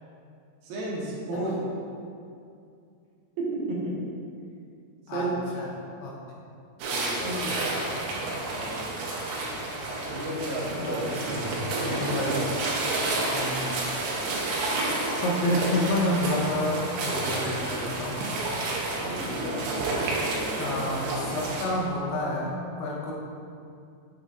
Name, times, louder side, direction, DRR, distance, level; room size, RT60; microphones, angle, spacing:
voice 1, 0.6-1.6 3.4-4.0 5.1-5.3 6.8-7.3 8.5-9.0 10.1-11.0 18.9-21.2, right 1 dB, 65° right, -6 dB, 2.7 m, -33 dB
sound 1, 6.8-21.7, right 2 dB, 85° right, 3.2 m, -30 dB
voice 2, 7.2-7.6 10.8-11.5 11.8-12.4 13.3-13.7 15.2-18.2 20.6-23.1, left 1 dB, 70° left, -5 dB, 2.8 m, -29 dB
7.1 x 7.0 x 2.6 m, 2.4 s
omnidirectional pair, 5.1 m